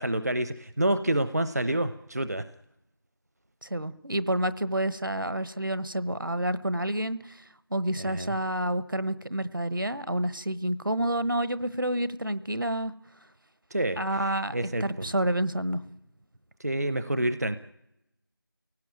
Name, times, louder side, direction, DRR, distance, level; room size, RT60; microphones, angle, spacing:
voice 1, 0.0-2.4 8.0-8.3 13.7-15.1 16.6-17.6, right 1 dB, 45° right, 12 dB, 0.8 m, -28 dB
voice 2, 3.6-7.4 7.7-12.9 14.0-14.5 14.8-15.8, right 1 dB, 65° right, 15 dB, 1.2 m, -29 dB
28.5 x 18.0 x 9.1 m, 0.91 s
figure-of-eight pair, 170°, 12 cm